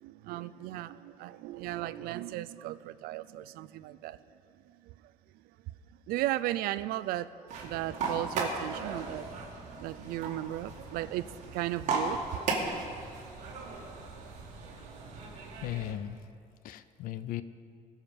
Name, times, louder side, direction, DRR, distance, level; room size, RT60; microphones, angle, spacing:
voice 1, 0.0-4.2 6.1-7.3 7.6-9.3 9.8-11.3 11.5-12.4, right 15 dB, 80° right, 15 dB, 0.5 m, -35 dB
sound 1, 7.5-15.9, right 3 dB, 50° right, 2.4 m, -37 dB
voice 2, 15.2-16.2 16.6-17.4, left 12 dB, 70° left, 14 dB, 0.6 m, -37 dB
20.5 x 7.2 x 5.4 m, 2.3 s
cardioid pair, 155°, 15 cm